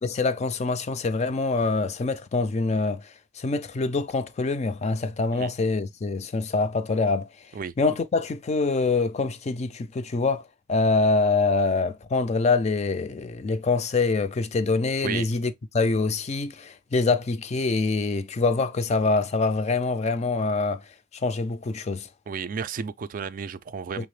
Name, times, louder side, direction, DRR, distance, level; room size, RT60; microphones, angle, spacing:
voice 1, 0.0-7.3 7.8-20.8 21.1-22.1 24.0-24.1, left 3 dB, 35° left, 0.4 m, -25 dB
voice 2, 22.3-24.1, right 6 dB, 45° right, 0.3 m, -32 dB
5.6 x 2.0 x 3.1 m
head